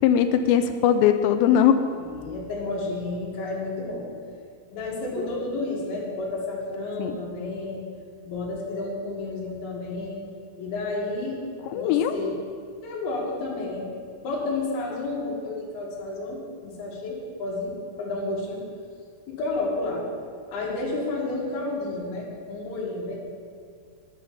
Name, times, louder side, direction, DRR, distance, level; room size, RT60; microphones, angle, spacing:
voice 1, 0.0-1.8 5.2-5.4 7.0-7.2 11.7-12.1, left 9 dB, 85° left, 9 dB, 2.7 m, -20 dB
voice 2, 1.9-4.1 4.7-7.8 8.2-10.2 10.6-11.4 11.7-12.4 12.8-13.9 14.2-18.6 19.3-20.1 20.5-23.2, left 2 dB, 60° left, -4 dB, 3.9 m, -31 dB
9.6 x 8.3 x 7.0 m, 2.2 s
omnidirectional pair, 5.2 m